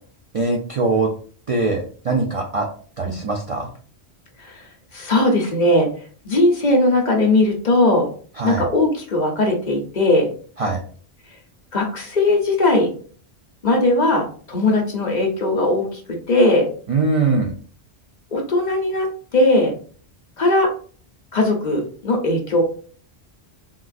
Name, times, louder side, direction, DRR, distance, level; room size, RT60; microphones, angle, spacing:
voice 1, 0.3-1.1 1.5-2.7 3.0-3.7 8.4-8.7 10.6-10.8 16.9-17.5, right 3 dB, 50° right, 0 dB, 0.4 m, -21 dB
voice 2, 4.9-5.9 6.2-8.1 8.4-10.3 11.7-12.9 13.6-16.7 18.3-19.7 20.4-20.7 21.3-22.6, left 2 dB, 50° left, 1 dB, 0.7 m, -19 dB
3.8 x 2.4 x 2.4 m, 0.43 s
omnidirectional pair, 1.1 m